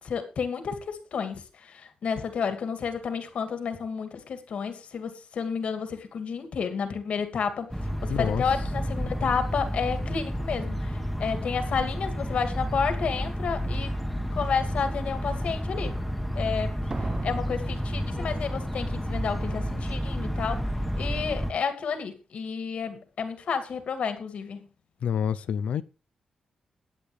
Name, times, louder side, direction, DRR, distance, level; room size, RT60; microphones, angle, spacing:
voice 1, 0.0-7.7 8.0-13.9 14.3-16.0 16.3-16.7 17.0-20.7 21.0-24.6, left 6 dB, 70° left, 2.4 m, -31 dB
sound 1, 7.7-21.5, equal, ahead, 1.5 m, -30 dB
voice 2, 8.1-8.4 25.0-25.8, left 8 dB, 85° left, 0.6 m, -27 dB
Slam, 13.7-13.8 14.4-14.8 16.9-18.8 19.0-19.1, right 3 dB, 35° right, 0.9 m, -39 dB
22.0 x 8.3 x 3.3 m
cardioid pair, 90°, 2 cm